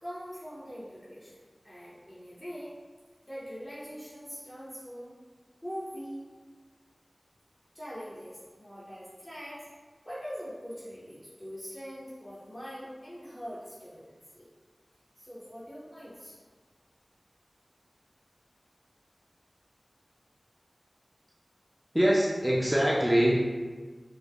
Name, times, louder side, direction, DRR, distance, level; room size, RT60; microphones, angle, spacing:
voice 1, 0.0-2.7 3.2-5.1 5.6-6.3 7.7-9.6 10.0-14.5 15.2-16.4, equal, 25° left, -11 dB, 0.8 m, -42 dB
voice 2, 21.9-23.4, equal, 5° right, -5 dB, 0.5 m, -23 dB
3.4 x 2.1 x 3.6 m, 1.4 s
wide cardioid pair, 55°, 0 cm